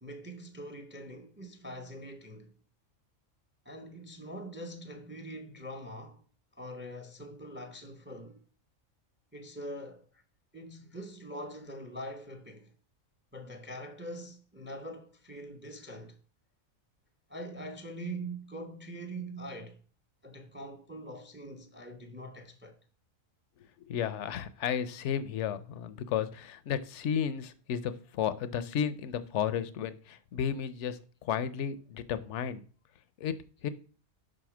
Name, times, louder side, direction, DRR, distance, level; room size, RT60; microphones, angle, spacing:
voice 1, 0.0-2.5 3.6-6.2 6.6-8.4 9.3-10.2 10.5-12.7 13.3-16.2 17.3-19.8 20.2-22.8, right 1 dB, 15° right, 0.5 m, -43 dB
voice 2, 23.9-32.6 33.2-33.3 33.6-33.7, left 8 dB, 65° left, 0.9 m, -33 dB
5.5 x 4.9 x 6.0 m
omnidirectional pair, 1.4 m